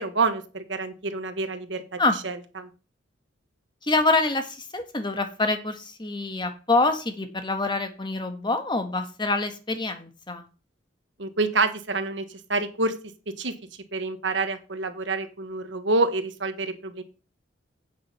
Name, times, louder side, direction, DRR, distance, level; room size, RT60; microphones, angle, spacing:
voice 1, 0.0-1.8 2.2-2.7 11.2-12.9 13.4-13.5 13.9-17.0, right 3 dB, 70° right, 9 dB, 1.4 m, -27 dB
voice 2, 3.8-10.4, left 2 dB, 25° left, 7 dB, 1.5 m, -26 dB
8.9 x 6.3 x 5.6 m, 0.35 s
head